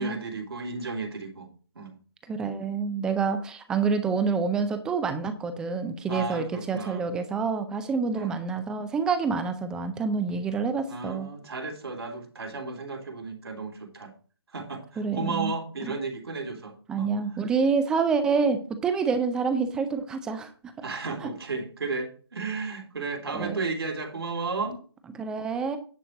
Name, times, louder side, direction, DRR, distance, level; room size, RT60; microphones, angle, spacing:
voice 1, 0.0-1.5 1.7-2.0 6.1-7.0 8.1-8.3 10.9-14.1 14.5-17.1 20.8-24.8, right 3 dB, 70° right, 3 dB, 3.1 m, -34 dB
voice 2, 2.3-11.3 15.0-15.5 15.9-16.0 16.9-20.5 20.8-20.9 21.2-21.3 23.3-23.6 25.1-25.8, right 5 dB, 5° right, 9 dB, 0.5 m, -27 dB
10.0 x 4.5 x 6.3 m, 0.39 s
hypercardioid pair, 160°, 13 cm